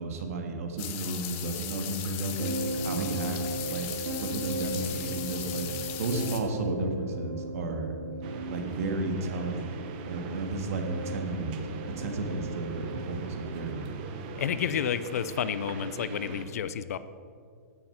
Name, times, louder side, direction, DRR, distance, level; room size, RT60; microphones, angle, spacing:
voice 1, 0.0-2.5 2.8-3.9 4.2-8.0 8.5-9.8 10.0-11.5 12.0-14.0, right 2 dB, 55° right, 4 dB, 1.8 m, -33 dB
sound 1, 0.8-6.4, left 11 dB, 25° left, 0.8 m, -38 dB
sound 2, 2.4-14.1 15.0-15.3, right 2 dB, 75° right, 2.5 m, -37 dB
sound 3, 8.2-16.5, right 4 dB, 30° right, 0.9 m, -41 dB
voice 2, 14.4-17.0, left 8 dB, 60° left, 14 dB, 0.6 m, -30 dB
16.0 x 6.6 x 5.8 m, 2.2 s
hypercardioid pair, 170°, 9 cm